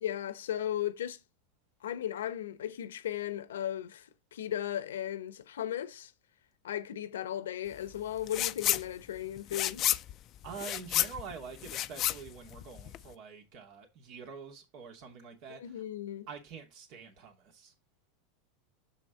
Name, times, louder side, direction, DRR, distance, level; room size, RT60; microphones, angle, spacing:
voice 1, 0.0-1.2 1.8-6.1 6.6-9.8 15.6-16.3, left 11 dB, 85° left, 0.9 m, -36 dB
sound 1, 8.3-8.8 9.2-13.1, left 13 dB, 45° left, 0.5 m, -31 dB
voice 2, 10.4-15.8 16.3-17.7, right 5 dB, 55° right, 2.8 m, -46 dB
6.9 x 6.0 x 4.1 m
hypercardioid pair, 100°, 0 cm